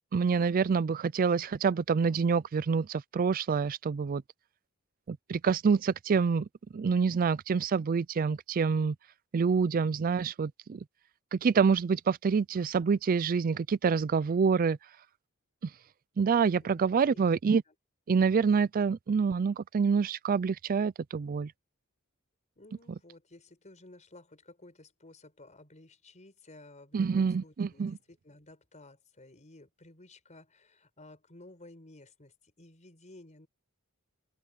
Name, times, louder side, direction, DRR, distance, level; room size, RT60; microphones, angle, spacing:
voice 1, 0.1-4.2 5.1-6.5 6.7-9.0 9.3-10.8 11.3-14.8 15.6-15.7 16.2-17.6 18.1-21.5 26.9-28.0, right 5 dB, 40° right, 0.4 m, -27 dB
voice 2, 16.6-17.7 22.5-33.5, left 2 dB, 35° left, 4.8 m, -54 dB
head